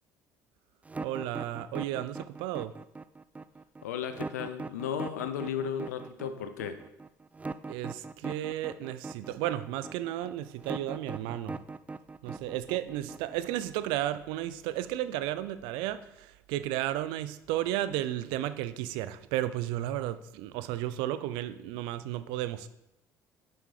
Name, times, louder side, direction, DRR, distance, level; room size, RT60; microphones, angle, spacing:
sound 1, 0.9-13.8, right 3 dB, 15° right, 0.4 m, -40 dB
voice 1, 1.0-2.7 7.7-11.6 12.2-22.7, right 13 dB, 75° right, 13 dB, 0.4 m, -33 dB
voice 2, 3.8-6.8, left 8 dB, 90° left, 9 dB, 0.6 m, -35 dB
7.6 x 5.5 x 4.8 m, 0.87 s
hypercardioid pair, 65°, 9 cm